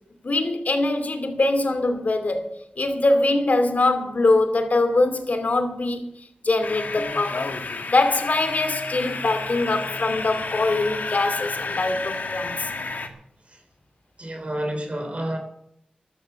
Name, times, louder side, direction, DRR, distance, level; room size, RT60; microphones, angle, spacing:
voice 1, 0.2-2.5 2.8-6.1 6.4-7.5 7.9-12.7, left 2 dB, 65° left, 2.6 m, -22 dB
sound 1, 6.6-13.1, left 3 dB, 80° left, 1.9 m, -31 dB
voice 2, 14.2-15.4, right 1 dB, 45° right, 3.7 m, -29 dB
13.5 x 11.5 x 6.9 m
wide cardioid pair, 60°, 3 cm